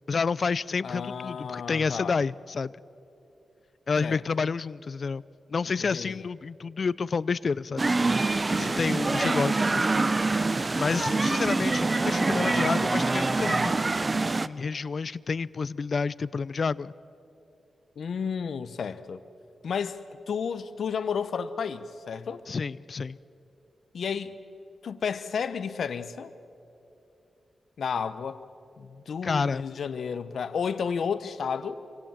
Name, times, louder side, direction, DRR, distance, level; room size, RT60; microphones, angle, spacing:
voice 1, 0.1-2.7 3.9-5.2 5.5-7.9 8.3-10.0 10.7-16.9 22.5-23.2 29.2-29.6, left 5 dB, 55° left, 0.5 m, -29 dB
voice 2, 0.8-2.2 4.0-4.5 5.8-6.3 8.5-9.2 18.0-19.2 19.6-22.4 23.9-24.4 24.8-26.3 27.8-28.4 28.8-31.8, left 6 dB, 75° left, 1.0 m, -32 dB
sound 1, 7.8-14.5, right 3 dB, 35° right, 0.7 m, -25 dB
26.5 x 24.5 x 7.4 m
cardioid pair, 60°, 0 cm